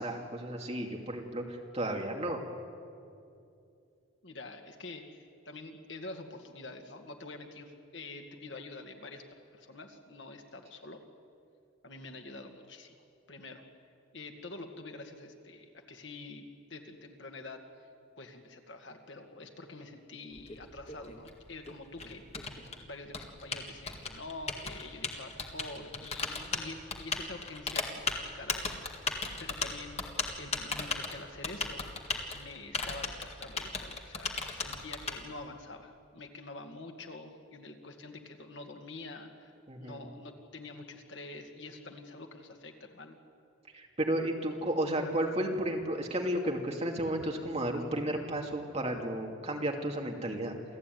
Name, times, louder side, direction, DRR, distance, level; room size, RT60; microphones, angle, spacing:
voice 1, 0.0-2.4 39.7-40.0 43.7-50.6, right 1 dB, 30° right, 1 dB, 2.5 m, -33 dB
voice 2, 4.2-9.2 9.5-11.0 11.8-13.0 13.3-13.6 14.1-16.4 16.7-17.6 18.2-29.1 29.4-31.8 32.3-39.5 39.8-43.2, left 2 dB, 60° left, 4 dB, 2.1 m, -46 dB
Typing, 20.3-35.1, left 4 dB, 30° left, 1.9 m, -36 dB
28.0 x 15.5 x 9.4 m, 2.6 s
head